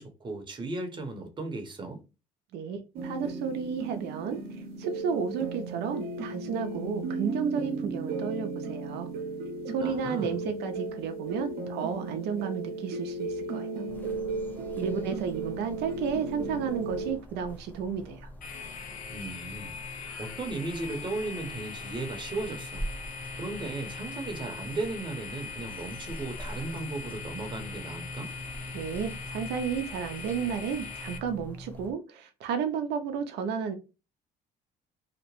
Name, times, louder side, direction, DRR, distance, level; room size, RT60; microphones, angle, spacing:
voice 1, 0.0-2.0 9.8-10.4 19.1-19.8 20.2-22.8 23.3-28.3, right 2 dB, 30° right, 0.8 m, -36 dB
voice 2, 2.5-9.1 9.7-13.8 14.8-18.3 28.7-33.7, right 6 dB, 80° right, 0.5 m, -32 dB
sound 1, 2.9-17.1, right 3 dB, 60° right, 0.9 m, -35 dB
sound 2, 13.9-31.9, equal, 10° left, 0.6 m, -44 dB
sound 3, 18.4-31.2, left 5 dB, 55° left, 0.5 m, -41 dB
2.8 x 2.1 x 2.9 m
cardioid pair, 110°, 17 cm